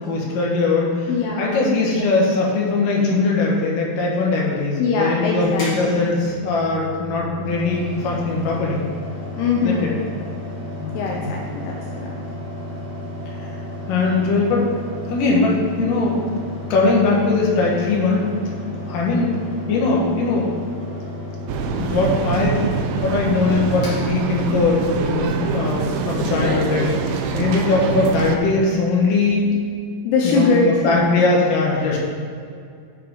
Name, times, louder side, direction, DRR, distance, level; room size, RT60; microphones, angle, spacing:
voice 1, 0.0-1.1 1.4-8.8 9.6-9.7 10.8-11.3 13.3-13.5 13.9-14.7 15.1-16.2 16.7-18.3 18.9-19.4 19.7-20.5 21.8-22.6 23.0-26.9 27.3-29.5 30.2-32.0, left 3 dB, 65° left, -3 dB, 2.6 m, -20 dB
voice 2, 1.1-1.7 4.8-6.1 9.4-10.0 10.9-12.2 26.2-27.0 30.0-31.1, left 4 dB, 80° left, 0 dB, 2.7 m, -23 dB
Mechanical fan, 5.5-24.9, left 1 dB, 35° left, 1.6 m, -33 dB
sound 1, 21.5-28.4, right 5 dB, 85° right, 2.0 m, -24 dB
7.1 x 5.7 x 5.1 m, 2.3 s
omnidirectional pair, 4.8 m